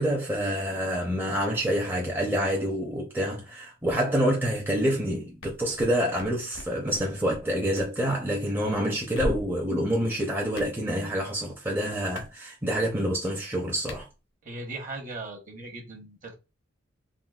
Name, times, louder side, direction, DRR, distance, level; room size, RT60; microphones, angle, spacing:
voice 1, 0.0-14.1, equal, 10° right, 0.5 m, -27 dB
sound 1, 5.4-7.4 7.7-7.9 9.1-9.7 10.6-10.7 12.2-12.3 13.9-14.1, equal, 90° left, 0.7 m, -36 dB
voice 2, 14.4-16.4, right 2 dB, 40° right, 1.0 m, -38 dB
3.7 x 2.2 x 2.2 m
head